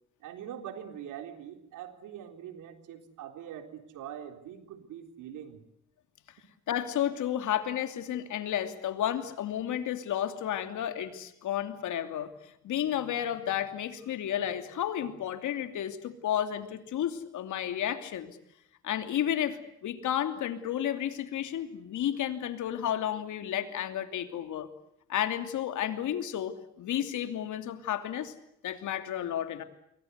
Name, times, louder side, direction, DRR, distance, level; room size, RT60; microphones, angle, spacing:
voice 1, 0.2-5.6, right 9 dB, 90° right, 7 dB, 3.8 m, -43 dB
voice 2, 6.7-18.4 18.8-24.7 25.1-28.3 28.6-29.6, left 10 dB, 75° left, 8 dB, 2.9 m, -32 dB
28.0 x 23.5 x 8.1 m, 0.77 s
cardioid pair, 90°, 30 cm